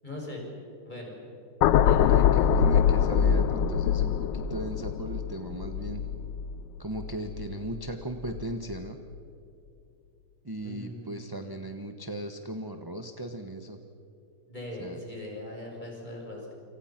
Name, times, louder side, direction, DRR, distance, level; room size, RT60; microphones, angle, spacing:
voice 1, 0.0-0.4 0.8-1.2 1.8-2.2 10.6-11.1 14.5-16.5, left 1 dB, 25° left, -2 dB, 6.8 m, -40 dB
sound 1, 1.6-7.9 8.3-8.5, left 8 dB, 90° left, 1.4 m, -24 dB
voice 2, 2.0-6.0 6.8-9.0 10.4-13.8 14.8-15.0, right 1 dB, 15° right, 6 dB, 0.9 m, -37 dB
28.5 x 26.5 x 5.9 m, 2.7 s
omnidirectional pair, 1.9 m